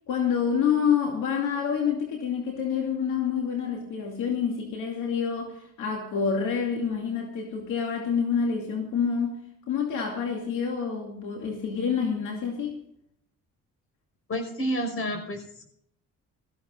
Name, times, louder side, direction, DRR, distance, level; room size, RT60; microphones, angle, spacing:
voice 1, 0.1-9.4 9.7-12.7, left 6 dB, 85° left, 2.6 m, -27 dB
voice 2, 14.3-15.6, equal, 45° left, 5.3 m, -30 dB
18.5 x 14.5 x 2.5 m
cardioid pair, 90°, 30 cm